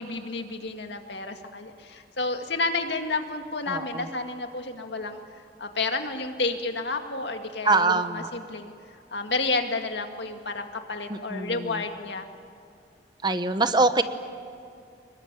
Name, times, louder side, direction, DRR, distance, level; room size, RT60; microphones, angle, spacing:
voice 1, 0.0-5.2 5.6-8.7 9.1-12.3, left 3 dB, 80° left, 5 dB, 2.1 m, -30 dB
voice 2, 3.7-4.1 7.6-8.3 11.1-11.8 13.2-14.0, right 3 dB, 25° right, 10 dB, 1.0 m, -24 dB
26.0 x 22.0 x 9.1 m, 2.5 s
head